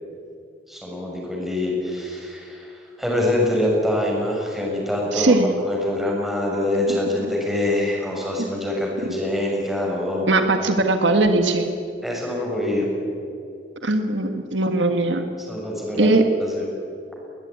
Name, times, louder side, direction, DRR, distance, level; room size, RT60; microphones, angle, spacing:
voice 1, 0.7-5.4 5.6-10.3 12.0-12.9 15.5-16.6, left 1 dB, ahead, -2 dB, 6.6 m, -25 dB
voice 2, 5.1-5.5 6.9-7.0 8.4-8.5 10.3-11.7 13.8-15.3 16.0-16.3, right 2 dB, 75° right, 6 dB, 1.8 m, -20 dB
22.0 x 19.0 x 9.7 m, 2.5 s
head